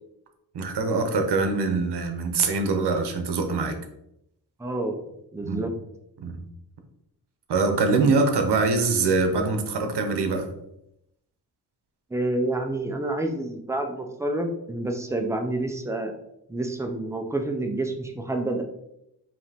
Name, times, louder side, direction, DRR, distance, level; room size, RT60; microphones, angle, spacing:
voice 1, 0.5-3.8 5.4-5.6 6.2-6.4 7.5-10.5, right 3 dB, 70° right, 5 dB, 0.8 m, -23 dB
voice 2, 4.6-5.0 5.3-5.7 12.1-16.1 16.5-18.6, right 2 dB, 10° right, 4 dB, 0.3 m, -28 dB
5.0 x 2.9 x 2.8 m, 0.81 s
wide cardioid pair, 165°, 42 cm